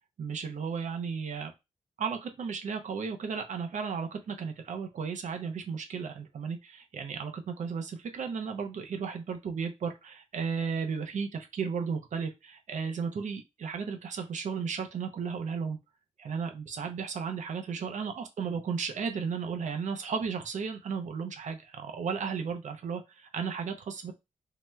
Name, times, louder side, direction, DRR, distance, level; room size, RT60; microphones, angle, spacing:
voice 1, 0.2-1.5 2.0-15.8 16.2-24.1, right 6 dB, 80° right, 5 dB, 0.6 m, -34 dB
3.1 x 2.8 x 2.2 m, 0.22 s
wide cardioid pair, 120°, 13 cm